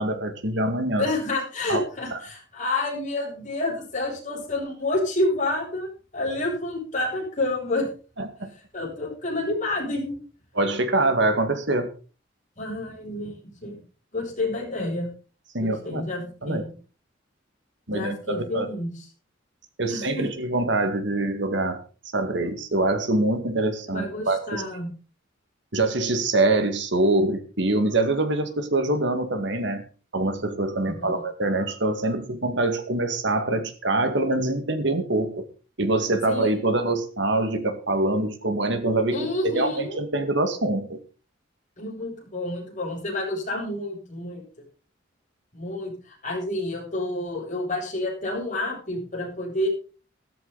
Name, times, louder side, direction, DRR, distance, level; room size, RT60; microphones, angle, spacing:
voice 1, 0.0-1.1 1.7-1.8 2.1-2.2 8.2-8.5 10.6-11.9 15.5-16.0 16.4-16.6 17.9-18.7 19.8-21.8 22.1-24.6 25.7-29.8 30.1-35.5 35.8-41.0, right 2 dB, 65° right, 8 dB, 2.1 m, -24 dB
voice 2, 1.0-7.9 8.7-10.2 12.6-13.8 14.1-15.1 15.6-16.8 17.9-18.9 19.9-20.3 23.9-24.9 30.8-31.2 36.3-36.5 39.1-40.0 41.8-44.4 45.5-45.9 46.2-49.7, left 2 dB, 40° left, -1 dB, 7.5 m, -29 dB
14.0 x 13.5 x 4.1 m, 0.37 s
head